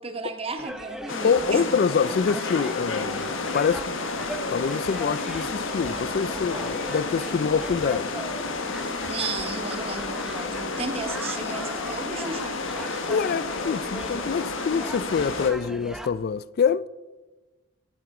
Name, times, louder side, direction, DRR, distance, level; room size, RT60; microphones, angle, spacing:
voice 1, 0.0-1.6 9.1-12.6 12.9-13.0, right 3 dB, 30° right, 1.2 m, -34 dB
sound 1, 0.6-16.1, equal, ahead, 0.6 m, -39 dB
sound 2, 1.1-15.5, left 3 dB, 65° left, 1.4 m, -31 dB
voice 2, 1.2-4.2 4.5-8.1 13.1-16.9, left 6 dB, 50° left, 0.3 m, -25 dB
sound 3, 1.2-8.7, right 1 dB, 90° right, 5.1 m, -55 dB
14.0 x 14.0 x 4.9 m
head